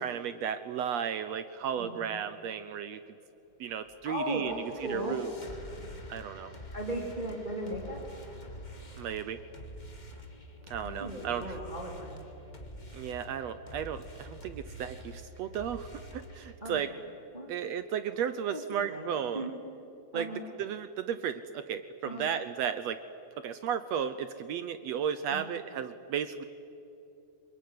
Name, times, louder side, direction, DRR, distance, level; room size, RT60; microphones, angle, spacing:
voice 1, 0.0-3.0 3.6-4.6 4.9-5.3 6.1-6.5 9.0-9.4 10.7-11.6 12.9-16.9 17.5-19.5 20.1-23.0 23.4-26.4, right 8 dB, 70° right, 11 dB, 1.7 m, -34 dB
sound 1, 3.9-16.5, equal, 15° left, 1.7 m, -47 dB
voice 2, 4.0-5.2 6.7-8.0 10.8-12.3 16.6-16.9 17.3-17.5 18.5-18.6 18.9-19.5 20.1-20.4 22.0-22.3 25.3-25.5, equal, 15° right, -1 dB, 3.3 m, -37 dB
26.5 x 22.0 x 9.6 m, 2.9 s
omnidirectional pair, 3.6 m